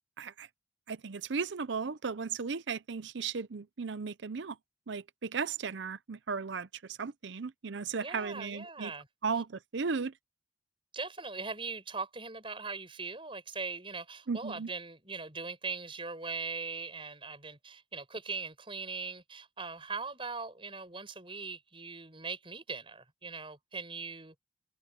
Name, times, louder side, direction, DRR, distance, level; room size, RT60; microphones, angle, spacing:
voice 1, 0.2-0.5 0.9-4.6 4.9-8.9 9.2-10.1 14.3-14.7, right 5 dB, 65° right, 0.6 m, -36 dB
voice 2, 8.0-9.1 10.9-24.3, right 4 dB, 25° right, 5.8 m, -40 dB
head